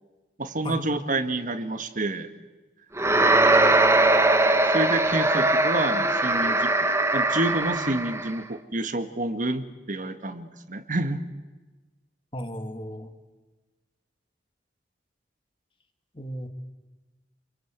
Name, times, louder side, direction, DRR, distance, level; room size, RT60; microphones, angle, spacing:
voice 1, 0.4-2.3 4.7-6.7 7.1-11.2, right 2 dB, 50° right, 9 dB, 1.7 m, -28 dB
sound 1, 3.0-8.3, right 2 dB, 15° right, 1.4 m, -21 dB
voice 2, 12.3-13.1 16.1-16.5, equal, 30° left, 6 dB, 2.7 m, -35 dB
28.5 x 23.0 x 8.2 m, 1.2 s
head